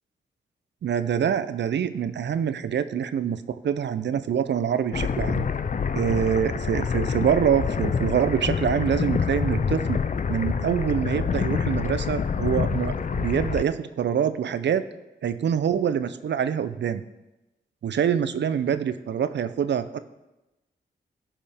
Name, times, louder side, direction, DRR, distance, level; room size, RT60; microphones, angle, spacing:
voice 1, 0.8-5.4 5.9-10.0 10.3-14.8 15.2-17.0 17.8-20.0, right 8 dB, 65° right, 13 dB, 0.6 m, -25 dB
sound 1, 4.9-13.6, left 6 dB, 40° left, 0.5 m, -27 dB
14.5 x 5.3 x 3.5 m, 0.99 s
supercardioid pair, 40°, 20 cm